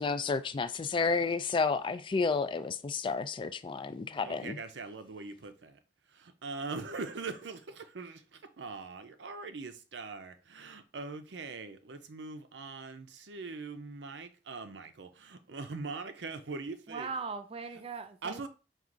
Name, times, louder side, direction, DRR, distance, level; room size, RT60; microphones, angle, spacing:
voice 1, 0.0-4.6, left 4 dB, 30° left, 0.3 m, -31 dB
voice 2, 4.2-5.8 6.1-17.1 18.2-18.5, right 4 dB, 85° right, 0.6 m, -42 dB
voice 3, 16.9-18.5, right 4 dB, 35° right, 0.5 m, -39 dB
4.6 x 2.4 x 3.8 m
head